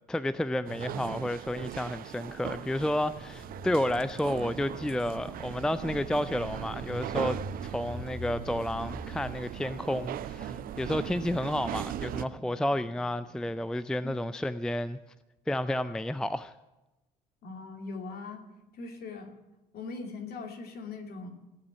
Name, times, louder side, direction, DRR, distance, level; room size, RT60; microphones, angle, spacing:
voice 1, 0.1-15.0 15.5-16.5, left 1 dB, 5° left, 15 dB, 0.4 m, -31 dB
sound 1, 0.7-12.3, right 12 dB, 45° right, 0.7 m, -39 dB
sound 2, 3.2-13.6, equal, 25° right, 2.0 m, -46 dB
voice 2, 17.4-18.4 18.7-19.3 19.7-21.3, left 3 dB, 45° left, 3 dB, 2.7 m, -40 dB
17.0 x 8.8 x 8.7 m, 1.0 s
figure-of-eight pair, 55°, 21 cm